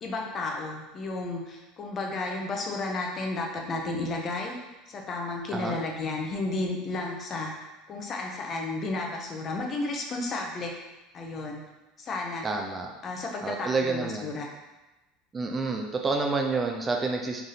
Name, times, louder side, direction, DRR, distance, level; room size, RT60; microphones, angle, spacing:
voice 1, 0.0-4.6 4.9-7.5 7.9-10.7 11.1-11.6 12.0-12.5 13.0-14.5, left 2 dB, 35° left, 0 dB, 0.8 m, -32 dB
voice 2, 12.4-12.9 13.4-14.3 15.3-17.4, right 3 dB, 25° right, 2 dB, 0.4 m, -29 dB
3.4 x 2.6 x 3.8 m, 1.1 s
hypercardioid pair, 90°, 0 cm